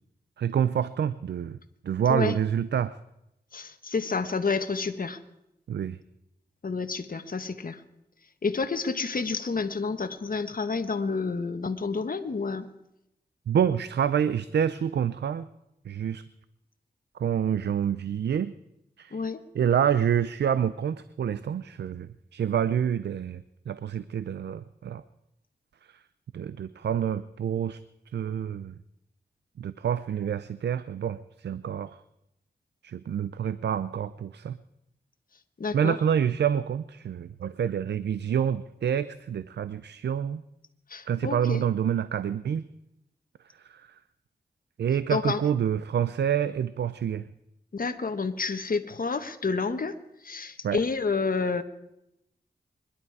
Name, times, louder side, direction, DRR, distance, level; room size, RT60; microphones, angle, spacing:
voice 1, 0.4-1.6 1.8-2.9 5.7-6.0 13.5-15.5 15.9-16.2 17.2-18.5 19.0-19.2 19.5-25.0 25.9-26.0 26.3-27.8 28.1-28.7 29.6-32.0 32.8-34.6 35.7-40.4 41.1-42.6 43.7-43.9 44.8-47.3 50.6-50.8, right 8 dB, 90° right, 14 dB, 0.5 m, -27 dB
voice 2, 3.5-5.2 6.6-7.8 8.4-12.7 19.1-19.4 35.6-36.0 40.9-41.6 45.1-45.4 47.7-50.0 50.2-51.6, left 4 dB, 55° left, 8 dB, 1.4 m, -29 dB
25.5 x 11.5 x 4.8 m, 0.84 s
cardioid pair, 40°, 17 cm